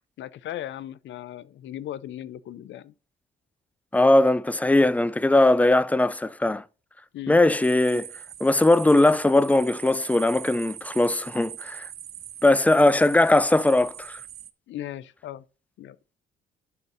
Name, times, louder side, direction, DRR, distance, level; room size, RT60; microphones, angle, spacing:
voice 1, 0.2-2.9 7.1-7.4 14.7-15.4 15.8-16.0, left 12 dB, 70° left, 0.6 m, -37 dB
voice 2, 3.9-6.6 7.3-8.1 8.4-11.9 12.4-14.2, left 2 dB, 5° left, 0.3 m, -20 dB
sound 1, 7.6-14.5, right 10 dB, 55° right, 0.6 m, -41 dB
10.5 x 5.9 x 2.6 m
cardioid pair, 90°, 20 cm